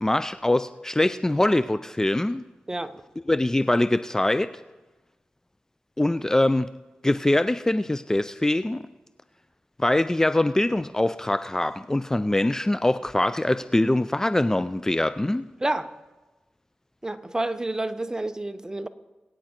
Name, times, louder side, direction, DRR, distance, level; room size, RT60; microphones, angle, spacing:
voice 1, 0.0-2.4 3.3-4.5 6.0-6.7 7.0-8.9 9.8-15.4, left 1 dB, 15° left, 0.4 m, -23 dB
voice 2, 2.7-3.0 15.6-15.9 17.0-18.9, right 2 dB, 20° right, 0.9 m, -29 dB
22.0 x 9.3 x 4.5 m
cardioid pair, 55°, 3 cm